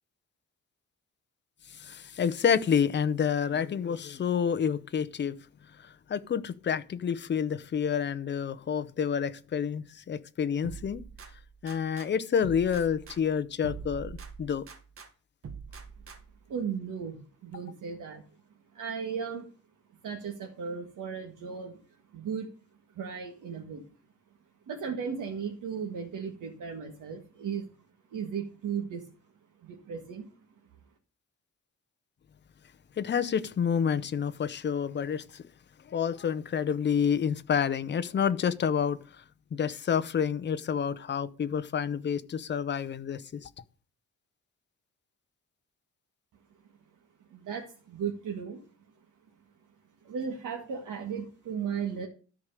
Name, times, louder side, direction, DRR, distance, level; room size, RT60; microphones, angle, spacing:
voice 1, 1.7-5.4 5.7-11.0 11.6-14.7 33.0-35.4 35.9-39.2 39.5-43.5, left 7 dB, 35° left, 0.7 m, -29 dB
sound 1, 10.6-12.1 12.4-15.1 15.4-16.5, right 5 dB, 45° right, 1.6 m, -44 dB
voice 2, 16.5-18.2 18.7-19.5 20.0-21.8 22.1-22.5 23.0-23.8 24.7-27.7 28.1-29.0 29.6-30.3 47.3-48.6 50.0-52.1, right 6 dB, 85° right, 1.8 m, -36 dB
13.0 x 4.9 x 6.7 m
wide cardioid pair, 180°, 30 cm